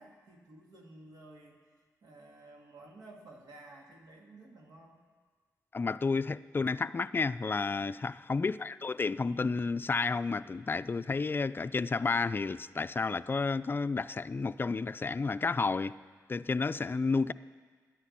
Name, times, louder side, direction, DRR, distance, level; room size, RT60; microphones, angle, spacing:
voice 1, 0.0-5.0 8.2-8.5, right 2 dB, 75° right, 0 dB, 2.2 m, -54 dB
voice 2, 5.7-16.0 16.3-17.3, left 4 dB, 30° left, 14 dB, 0.4 m, -31 dB
11.0 x 9.9 x 8.6 m, 1.5 s
cardioid pair, 55°, 7 cm